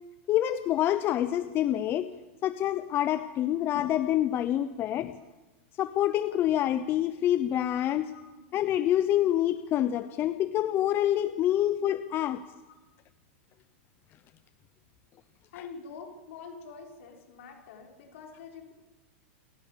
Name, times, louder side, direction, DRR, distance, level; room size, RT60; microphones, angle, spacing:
voice 1, 0.3-2.1 2.4-5.1 5.8-8.1 8.5-12.4, left 12 dB, 30° left, 12 dB, 0.8 m, -27 dB
voice 2, 15.5-18.7, left 5 dB, 70° left, 2 dB, 5.9 m, -46 dB
28.0 x 14.5 x 7.0 m, 1.1 s
supercardioid pair, 145°, 7 cm